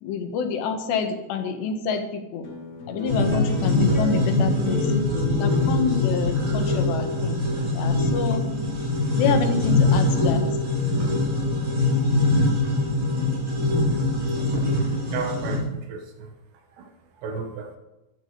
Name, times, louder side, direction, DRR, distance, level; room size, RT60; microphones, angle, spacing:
voice 1, 0.0-2.5 2.9-4.9 5.3-7.4 7.7-8.5 9.2-10.5, left 5 dB, 85° left, 3.8 m, -27 dB
sound 1, 2.4-9.1, left 1 dB, 45° left, 1.2 m, -33 dB
sound 2, 3.1-15.6, left 2 dB, 50° right, 6.5 m, -23 dB
voice 2, 14.7-16.4 16.8-17.8, right 5 dB, 90° right, 4.0 m, -33 dB
14.0 x 11.5 x 5.2 m
omnidirectional pair, 4.8 m